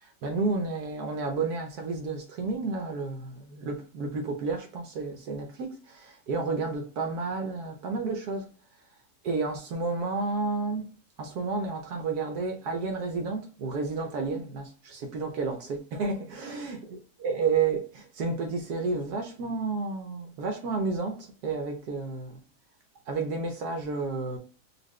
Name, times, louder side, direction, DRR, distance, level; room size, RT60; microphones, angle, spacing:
voice 1, 0.0-8.5 9.2-10.9 11.2-22.4 23.1-24.4, right 4 dB, 70° right, 1.2 m, -31 dB
4.3 x 2.4 x 3.1 m
omnidirectional pair, 1.8 m